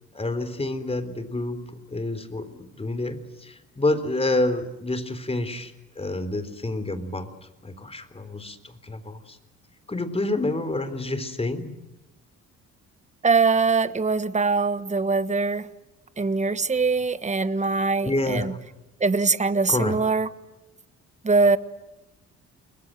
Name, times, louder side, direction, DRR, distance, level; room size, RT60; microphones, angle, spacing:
voice 1, 0.1-7.3 7.6-9.4 9.9-11.8 18.0-18.5 19.7-20.0, left 2 dB, 20° left, 3.8 m, -28 dB
voice 2, 13.2-15.7 16.2-18.5 19.0-20.3 21.2-21.6, right 4 dB, 25° right, 1.5 m, -22 dB
29.5 x 21.5 x 7.8 m
cardioid pair, 90°, 30 cm